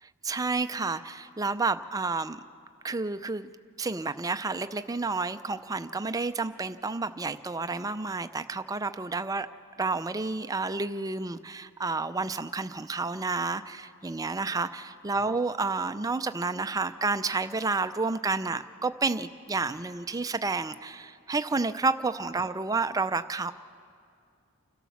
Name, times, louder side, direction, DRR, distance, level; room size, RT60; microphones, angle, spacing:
voice 1, 0.2-2.4 2.8-3.5 3.8-9.5 9.8-23.5, right 3 dB, 15° right, 11 dB, 0.4 m, -30 dB
29.5 x 12.5 x 7.1 m, 2.4 s
head